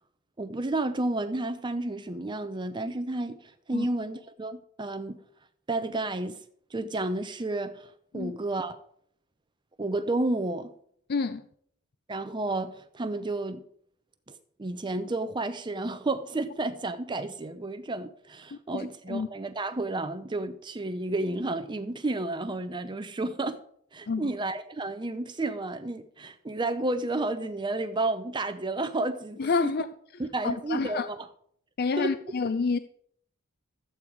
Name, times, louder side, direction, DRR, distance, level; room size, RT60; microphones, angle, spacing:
voice 1, 0.4-5.2 5.7-6.4 6.7-8.8 9.8-10.7 12.1-13.6 14.3-23.6 23.9-29.7 30.2-31.3 32.0-32.1, right 2 dB, 20° right, 0.6 m, -31 dB
voice 2, 11.1-11.4 18.5-19.3 24.1-24.3 29.4-29.9 30.1-31.1 31.8-32.8, left 4 dB, 50° left, 0.5 m, -29 dB
13.5 x 8.6 x 4.7 m
head